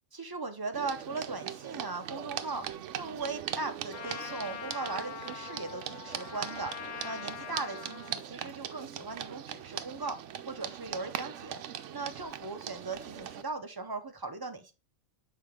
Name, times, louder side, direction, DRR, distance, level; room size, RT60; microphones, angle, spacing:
voice 1, 0.1-2.7 2.9-6.7 7.0-11.6 11.9-14.7, right 3 dB, 30° right, 0.4 m, -38 dB
sound 1, 0.7-13.4, right 10 dB, 75° right, 0.9 m, -40 dB
Trumpet, 3.9-8.2, left 10 dB, 75° left, 0.9 m, -43 dB
6.7 x 4.3 x 3.6 m
omnidirectional pair, 1.3 m